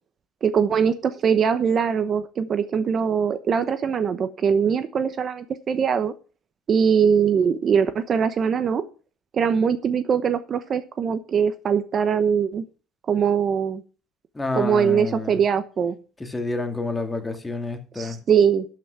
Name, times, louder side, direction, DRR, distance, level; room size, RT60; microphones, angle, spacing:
voice 1, 0.4-6.1 6.7-8.8 9.3-12.6 13.1-13.8 14.5-15.9 18.0-18.6, right 7 dB, 45° right, 0.9 m, -22 dB
voice 2, 14.3-15.4 16.2-18.2, left 2 dB, 15° left, 2.2 m, -29 dB
12.0 x 6.0 x 5.7 m
supercardioid pair, 90°, 0 cm